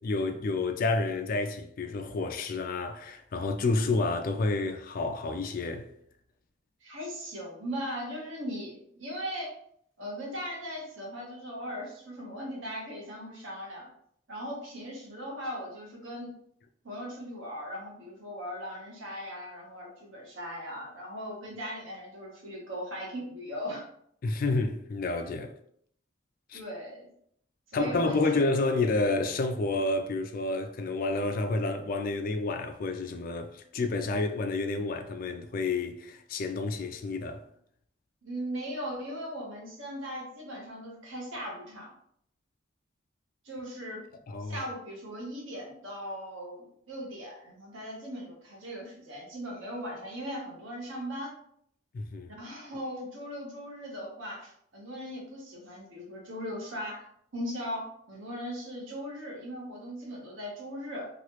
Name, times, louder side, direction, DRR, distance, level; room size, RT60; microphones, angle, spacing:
voice 1, 0.0-5.9 24.2-25.5 26.5-26.6 27.7-37.4 44.3-44.6 51.9-52.3, left 3 dB, 45° left, 0.3 m, -29 dB
voice 2, 6.8-9.5 10.0-13.9 14.3-16.4 16.8-23.8 26.5-27.1 27.7-28.4 38.2-41.9 43.4-44.0 44.4-51.3 52.3-57.1 57.3-61.1, equal, 85° right, 1.0 m, -38 dB
3.0 x 2.3 x 3.0 m
head